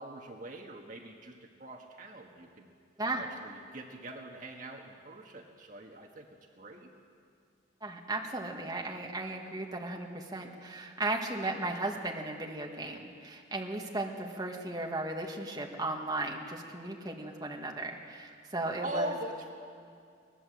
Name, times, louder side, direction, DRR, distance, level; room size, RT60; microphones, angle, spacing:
voice 1, 0.0-2.7 3.2-6.9 18.8-19.5, right 1 dB, 45° right, 2 dB, 1.5 m, -42 dB
voice 2, 7.8-19.1, right 2 dB, 20° right, 0 dB, 1.8 m, -36 dB
22.0 x 19.5 x 7.8 m, 2.3 s
head